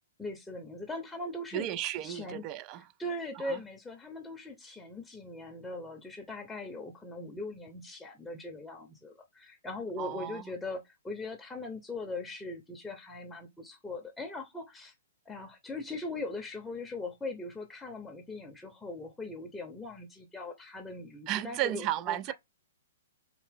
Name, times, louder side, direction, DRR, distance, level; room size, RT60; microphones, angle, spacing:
voice 1, 0.2-1.7 2.0-2.4 3.0-14.9 15.3-22.3, left 2 dB, 5° left, 0.7 m, -40 dB
voice 2, 1.5-2.9 3.4-3.6 10.0-10.5 21.3-22.3, right 14 dB, 30° right, 0.3 m, -34 dB
3.6 x 2.8 x 3.4 m
hypercardioid pair, 135°, 0 cm